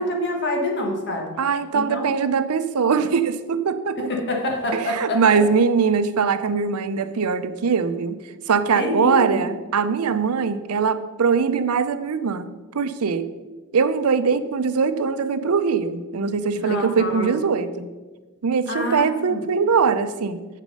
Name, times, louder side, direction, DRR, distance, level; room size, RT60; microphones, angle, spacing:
voice 1, 0.0-1.3 1.7-2.1 4.1-5.4 8.7-9.4 16.5-17.4 18.7-19.4, left 1 dB, 55° left, 2 dB, 1.5 m, -26 dB
voice 2, 1.4-4.1 4.7-8.2 8.5-12.5 12.7-13.3 13.7-17.9 18.4-20.4, right 5 dB, 85° right, 12 dB, 0.6 m, -21 dB
7.6 x 6.2 x 5.3 m, 1.2 s
head